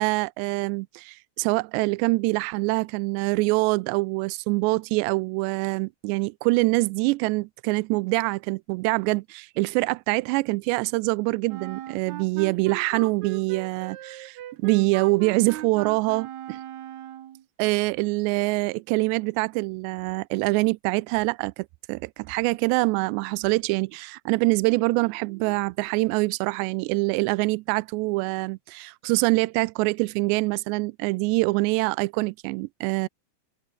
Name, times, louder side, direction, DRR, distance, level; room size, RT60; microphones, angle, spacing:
voice 1, 0.0-16.6 17.6-33.1, right 25 dB, 85° right, 2.7 m, -25 dB
Wind instrument woodwind instrument, 11.5-17.4, right 12 dB, 70° right, 1.8 m, -38 dB
omnidirectional pair, 4.9 m